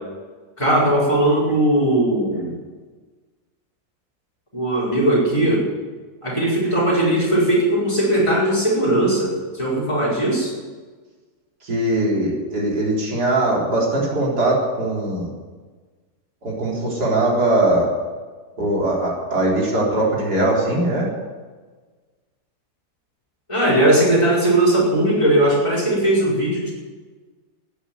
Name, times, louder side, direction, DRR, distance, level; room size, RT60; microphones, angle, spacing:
voice 1, 0.6-2.6 4.5-5.7 6.2-10.5 23.5-26.7, right 1 dB, 20° left, -4 dB, 5.3 m, -18 dB
voice 2, 11.6-15.3 16.4-17.9 18.6-21.1, right 1 dB, 90° right, -4 dB, 4.5 m, -20 dB
13.0 x 10.0 x 9.4 m, 1.4 s
omnidirectional pair, 1.7 m